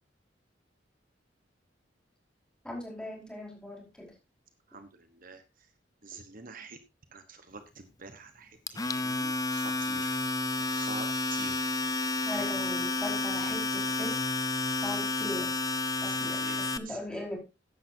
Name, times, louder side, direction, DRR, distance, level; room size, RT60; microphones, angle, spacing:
voice 1, 2.6-4.1 12.2-14.2 14.7-15.5 16.0-17.4, left 1 dB, 5° left, -1 dB, 4.9 m, -39 dB
voice 2, 4.7-5.4 6.0-6.8 7.1-10.2 10.6-11.7 16.0-16.6 16.9-17.0, right 4 dB, 50° right, 8 dB, 1.2 m, -46 dB
Domestic sounds home sounds, 8.7-16.8, left 3 dB, 20° left, 0.7 m, -31 dB
14.5 x 10.5 x 2.7 m, 0.26 s
head